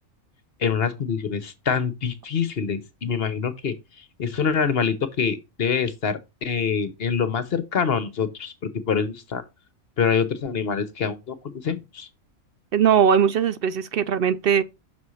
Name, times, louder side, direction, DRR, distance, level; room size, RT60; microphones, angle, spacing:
voice 1, 0.6-3.7 4.2-8.5 8.9-9.4 10.0-12.1, left 6 dB, 50° left, 0.9 m, -25 dB
voice 2, 12.7-14.6, right 8 dB, 60° right, 0.6 m, -20 dB
6.2 x 4.2 x 6.3 m
omnidirectional pair, 1.4 m